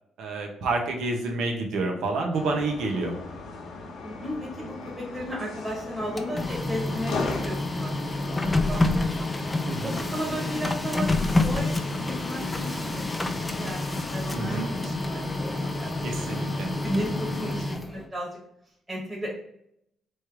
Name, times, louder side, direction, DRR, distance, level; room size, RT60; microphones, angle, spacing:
voice 1, 0.2-3.2 9.6-9.9 14.3-14.8 16.0-16.8, right 3 dB, 80° right, 2 dB, 0.9 m, -29 dB
sound 1, 2.3-17.6, left 3 dB, 75° left, 1.0 m, -38 dB
voice 2, 4.0-8.8 9.8-18.3 18.9-19.3, equal, 15° right, -5 dB, 1.3 m, -35 dB
Printer, 6.0-18.1, left 2 dB, 15° left, 0.5 m, -28 dB
3.3 x 3.1 x 4.6 m, 0.75 s
cardioid pair, 90°, 0 cm